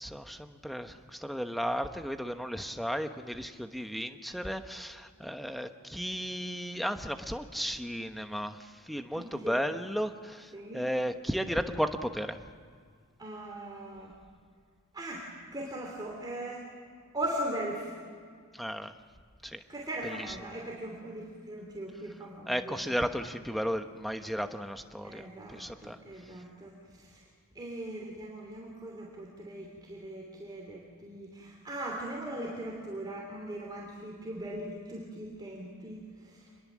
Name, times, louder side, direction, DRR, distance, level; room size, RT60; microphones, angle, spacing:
voice 1, 0.0-12.4 18.5-18.9 19.4-19.6 20.0-20.1 22.5-26.0, equal, ahead, 7 dB, 1.0 m, -34 dB
voice 2, 9.1-9.6 10.5-10.9 13.2-14.1 14.9-16.7 17.1-17.9 19.7-22.8 25.0-27.2 27.5-36.4, right 1 dB, 20° right, -2 dB, 3.1 m, -39 dB
27.0 x 21.5 x 7.4 m, 2.1 s
head